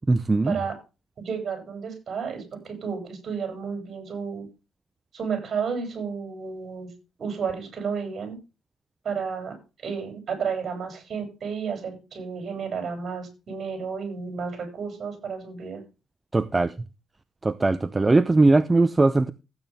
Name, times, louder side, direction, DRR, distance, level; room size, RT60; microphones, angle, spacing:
voice 1, 0.1-0.6 16.3-16.7 17.4-19.3, right 2 dB, 20° right, 0.7 m, -20 dB
voice 2, 1.2-4.5 5.1-6.9 7.2-8.4 9.0-9.6 9.8-15.8, right 6 dB, 50° right, 7.0 m, -32 dB
15.5 x 9.0 x 3.5 m
cardioid pair, 90°, 0 cm